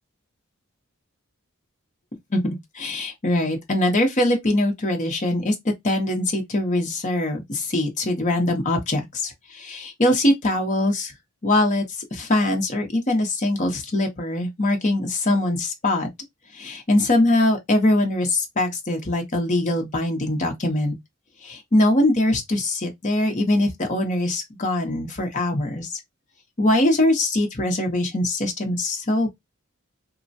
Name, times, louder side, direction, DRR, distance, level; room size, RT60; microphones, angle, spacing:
voice 1, 2.3-11.1 11.4-16.1 16.5-21.0 21.4-26.0 26.6-29.4, left 1 dB, 35° left, 0.7 m, -22 dB
3.1 x 2.1 x 2.6 m
head